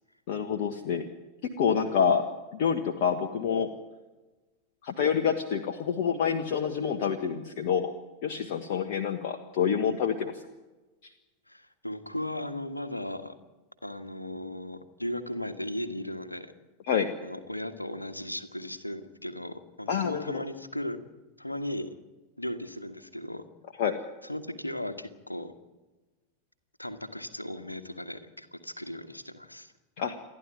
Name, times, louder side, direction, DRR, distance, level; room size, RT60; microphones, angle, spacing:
voice 1, 0.3-1.0 1.6-2.2 2.5-3.7 4.8-7.9 8.2-10.3 16.8-17.1 19.9-20.4 23.8-24.0 30.0-30.1, left 7 dB, 50° left, 5 dB, 1.5 m, -27 dB
voice 2, 11.5-13.3 13.8-16.5 17.2-21.0 21.4-21.9 22.4-23.4 24.2-25.5 26.8-29.7, left 1 dB, 85° left, 8 dB, 1.6 m, -36 dB
28.5 x 11.5 x 9.2 m, 1.2 s
figure-of-eight pair, 90°, 0 cm